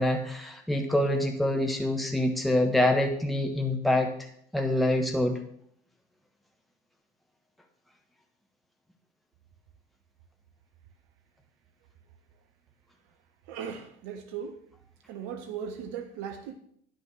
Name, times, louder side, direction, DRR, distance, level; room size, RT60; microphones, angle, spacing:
voice 1, 0.0-4.1 4.5-5.4, left 1 dB, ahead, 4 dB, 1.3 m, -25 dB
voice 2, 13.5-14.5 15.1-16.6, right 7 dB, 55° right, 7 dB, 1.0 m, -37 dB
10.0 x 6.6 x 6.2 m, 0.66 s
figure-of-eight pair, 65°, 30 cm